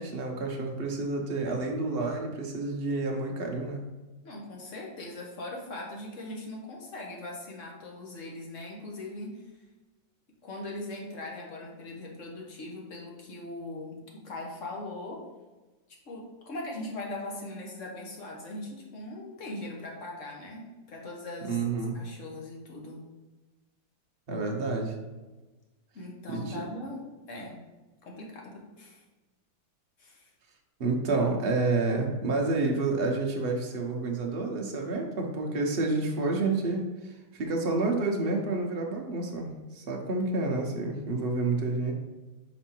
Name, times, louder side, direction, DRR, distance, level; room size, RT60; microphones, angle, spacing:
voice 1, 0.0-3.8 21.5-22.0 24.3-25.0 26.3-26.6 30.8-41.9, right 3 dB, 45° right, 0 dB, 0.8 m, -29 dB
voice 2, 4.2-9.5 10.4-15.2 16.1-21.6 21.9-23.0 25.9-27.6 28.0-29.0 30.0-30.3, left 2 dB, 45° left, -1 dB, 1.4 m, -40 dB
5.4 x 4.9 x 4.5 m, 1.2 s
omnidirectional pair, 2.1 m